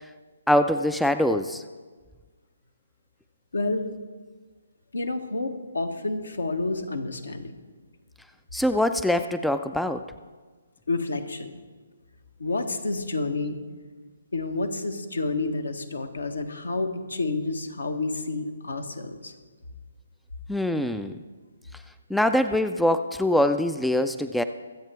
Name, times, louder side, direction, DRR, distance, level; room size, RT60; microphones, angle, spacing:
voice 1, 0.5-1.6 8.5-10.0 20.5-21.1 22.1-24.4, left 1 dB, ahead, 10 dB, 0.3 m, -23 dB
voice 2, 3.5-3.9 4.9-7.5 10.9-11.5 12.4-13.6 14.3-19.3, left 3 dB, 70° left, 8 dB, 1.2 m, -29 dB
24.0 x 8.1 x 3.4 m, 1.4 s
figure-of-eight pair, 135°, 0 cm